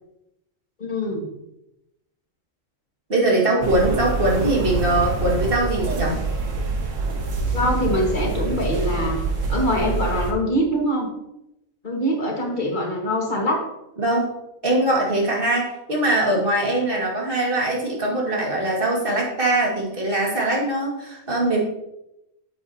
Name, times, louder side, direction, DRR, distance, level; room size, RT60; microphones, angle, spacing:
voice 1, 0.8-1.3 7.5-9.2 9.5-11.1 11.8-13.6, equal, 40° left, 0 dB, 1.8 m, -23 dB
voice 2, 3.1-6.2 14.0-14.3 14.6-21.6, right 1 dB, 45° right, -3 dB, 2.3 m, -22 dB
sound 1, 3.6-10.3, right 3 dB, 70° right, 1.5 m, -26 dB
8.5 x 7.6 x 2.8 m, 0.86 s
omnidirectional pair, 1.4 m